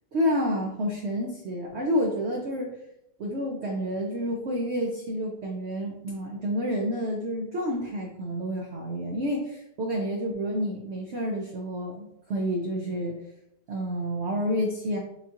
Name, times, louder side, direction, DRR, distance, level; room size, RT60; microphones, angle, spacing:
voice 1, 0.1-2.7 3.2-13.2 13.7-15.0, equal, 70° right, -1 dB, 0.6 m, -29 dB
6.9 x 2.8 x 2.4 m, 0.82 s
omnidirectional pair, 1.9 m